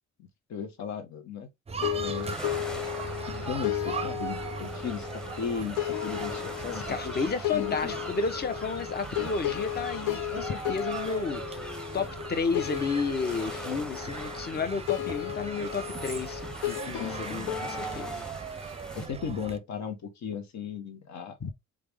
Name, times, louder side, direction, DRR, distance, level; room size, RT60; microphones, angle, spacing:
voice 1, 0.5-1.5 1.9-2.4 3.2-7.9 18.9-21.5, left 7 dB, 65° left, 1.4 m, -36 dB
sound 1, 1.7-19.6, right 5 dB, 20° right, 0.5 m, -39 dB
sound 2, 1.8-18.2, left 14 dB, 90° left, 0.6 m, -35 dB
sound 3, 2.1-19.1, right 1 dB, ahead, 0.9 m, -43 dB
voice 2, 6.7-11.4 11.9-18.2 21.4-21.5, left 5 dB, 35° left, 0.9 m, -32 dB
3.9 x 3.5 x 3.4 m
cardioid pair, 90°, 30 cm